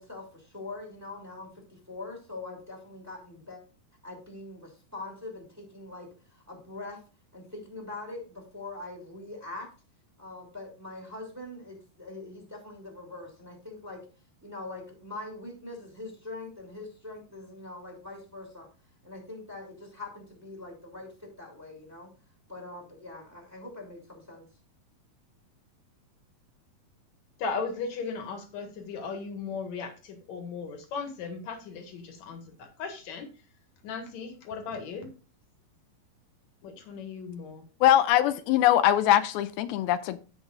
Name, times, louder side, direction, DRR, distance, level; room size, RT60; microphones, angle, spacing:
voice 1, 0.0-3.6 4.0-7.0 7.3-9.7 10.2-14.0 14.4-18.7 19.0-22.1 22.5-24.5, left 2 dB, 5° right, 2.1 m, -43 dB
voice 2, 27.4-33.3 33.8-35.1 36.6-37.6, left 5 dB, 55° left, 2.5 m, -37 dB
voice 3, 37.8-40.2, left 12 dB, 85° left, 2.4 m, -22 dB
16.0 x 5.4 x 2.5 m
omnidirectional pair, 4.4 m